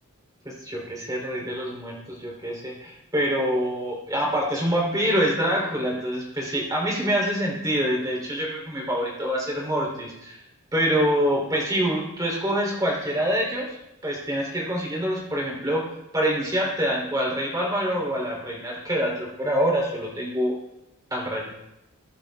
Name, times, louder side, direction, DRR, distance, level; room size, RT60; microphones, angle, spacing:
voice 1, 0.4-10.4 10.7-13.8 14.0-15.8 16.1-20.5 21.1-21.6, equal, 15° right, -2 dB, 3.3 m, -26 dB
22.0 x 8.4 x 2.4 m, 0.92 s
head